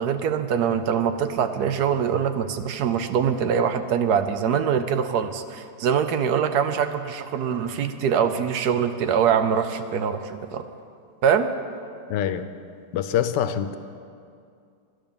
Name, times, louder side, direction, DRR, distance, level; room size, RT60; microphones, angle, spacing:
voice 1, 0.0-10.6 11.2-11.5, right 7 dB, 70° right, 9 dB, 1.2 m, -23 dB
voice 2, 12.1-12.5 12.9-13.8, left 9 dB, 80° left, 11 dB, 1.2 m, -24 dB
12.5 x 10.0 x 7.0 m, 2.4 s
omnidirectional pair, 1.9 m